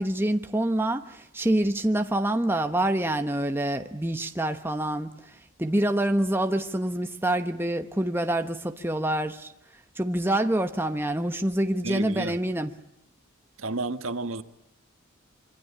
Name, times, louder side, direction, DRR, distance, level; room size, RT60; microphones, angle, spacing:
voice 1, 0.0-9.5 10.0-12.7, right 1 dB, 10° right, 1.0 m, -26 dB
voice 2, 11.8-12.3 13.6-14.4, right 3 dB, 80° right, 1.5 m, -31 dB
26.0 x 24.5 x 8.7 m
head